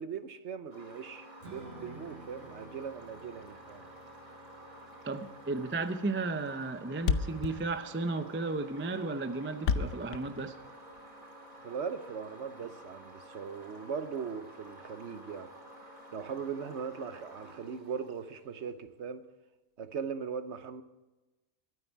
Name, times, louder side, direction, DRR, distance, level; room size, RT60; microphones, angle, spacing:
voice 1, 0.0-3.9 11.6-15.5 16.1-19.3 19.8-20.8, right 6 dB, 60° right, 1.1 m, -39 dB
sound 1, 0.7-18.7, right 1 dB, 80° right, 5.5 m, -51 dB
Strum, 1.4-7.7, right 2 dB, 40° right, 1.9 m, -54 dB
voice 2, 5.0-10.6, right 3 dB, 15° right, 0.4 m, -34 dB
Thump thud, 5.6-5.8 6.1-6.2 6.4-6.5 6.7-6.8 7.0-11.0, left 6 dB, 65° left, 1.0 m, -32 dB
23.5 x 9.5 x 4.7 m
omnidirectional pair, 1.4 m